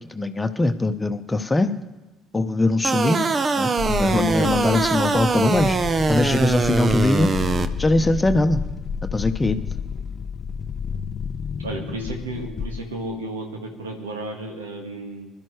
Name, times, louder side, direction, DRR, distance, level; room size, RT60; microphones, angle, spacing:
voice 1, 0.1-1.7 2.3-3.3 3.6-5.8 6.1-7.3 7.8-8.6 9.1-9.6, left 2 dB, 20° left, 9 dB, 1.0 m, -21 dB
sound 1, 2.8-7.7, right 4 dB, 35° right, 0.9 m, -22 dB
sound 2, 3.8-13.1, left 6 dB, 50° left, 0.6 m, -31 dB
voice 2, 11.6-15.3, right 2 dB, 80° right, 3 dB, 1.8 m, -33 dB
25.0 x 12.5 x 3.3 m, 1.1 s
figure-of-eight pair, 50°, 0 cm